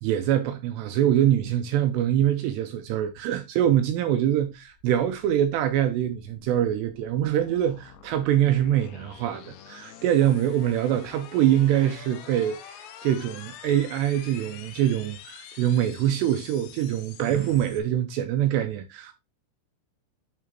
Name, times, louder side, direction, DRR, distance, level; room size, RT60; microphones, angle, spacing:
voice 1, 0.0-19.1, right 11 dB, 85° right, 2.5 m, -24 dB
sound 1, 4.6-17.8, left 9 dB, 75° left, 2.6 m, -47 dB
11.0 x 3.8 x 3.1 m
omnidirectional pair, 5.5 m